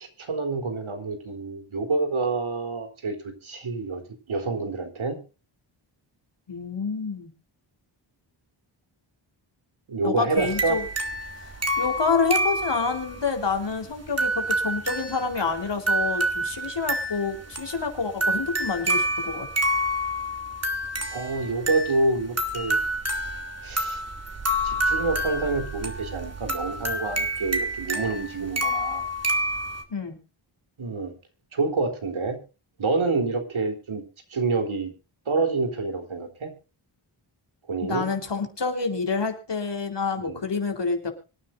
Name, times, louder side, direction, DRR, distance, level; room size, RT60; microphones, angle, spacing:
voice 1, 0.2-3.2 3.4-4.0 4.3-5.2 9.9-10.8 21.1-22.8 23.6-24.0 24.6-29.1 30.8-31.1 31.5-32.4 32.8-34.0 34.3-34.9 35.3-36.5 37.7-38.1 40.2-40.4, right 3 dB, 70° right, 5 dB, 3.8 m, -27 dB
voice 2, 6.5-7.3 10.0-10.9 11.4-19.5 29.9-30.2 37.8-41.1, left 4 dB, 55° left, 5 dB, 4.0 m, -28 dB
sound 1, 10.4-29.8, right 1 dB, 30° right, 3.2 m, -28 dB
25.0 x 9.8 x 2.6 m, 0.33 s
cardioid pair, 55°, 49 cm